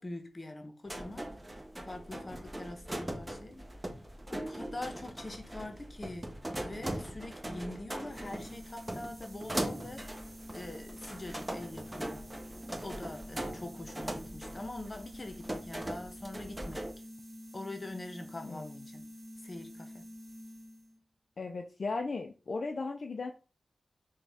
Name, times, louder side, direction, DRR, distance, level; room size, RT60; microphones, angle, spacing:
voice 1, 0.0-1.3 1.9-3.7 4.3-6.3 6.6-10.2 10.5-12.2 12.8-16.9 17.5-19.1 19.4-20.1, left 2 dB, 40° left, 0.8 m, -44 dB
sound 1, 0.9-16.9, right 1 dB, 20° right, 0.8 m, -40 dB
sound 2, 8.1-21.0, equal, 50° right, 1.2 m, -49 dB
voice 2, 18.4-18.8 21.4-23.3, left 3 dB, 65° left, 0.4 m, -36 dB
4.0 x 2.4 x 3.4 m
cardioid pair, 50°, 0 cm